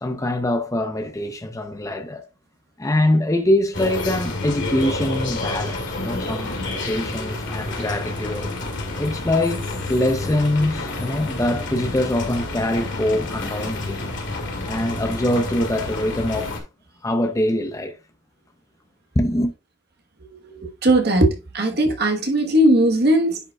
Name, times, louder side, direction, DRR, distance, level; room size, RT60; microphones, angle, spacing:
voice 1, 0.0-2.3 2.8-6.6 6.9-8.5 9.0-14.1 14.6-16.6 17.0-18.0 19.2-19.5, left 1 dB, 15° left, 0.6 m, -23 dB
sound 1, 3.7-16.6, left 2 dB, 60° left, 2.2 m, -29 dB
voice 2, 20.5-23.4, right 1 dB, 50° right, 1.2 m, -18 dB
10.0 x 5.0 x 2.3 m
head